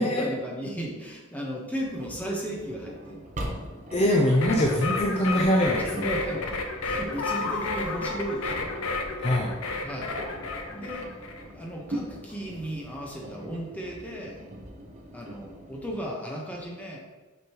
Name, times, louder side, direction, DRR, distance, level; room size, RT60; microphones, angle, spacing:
voice 1, 0.0-3.3 5.8-6.6 6.8-8.7 9.8-10.2 10.7-11.1 11.5-14.4 15.1-17.0, right 1 dB, 5° left, -2 dB, 1.0 m, -35 dB
Engine, 1.8-16.0, equal, 35° right, 0.8 m, -41 dB
voice 2, 3.9-6.1 9.2-9.5, equal, 30° left, -1 dB, 0.5 m, -23 dB
sound 1, 4.3-11.4, left 3 dB, 90° left, 0.7 m, -31 dB
6.5 x 5.2 x 3.0 m, 1.2 s
head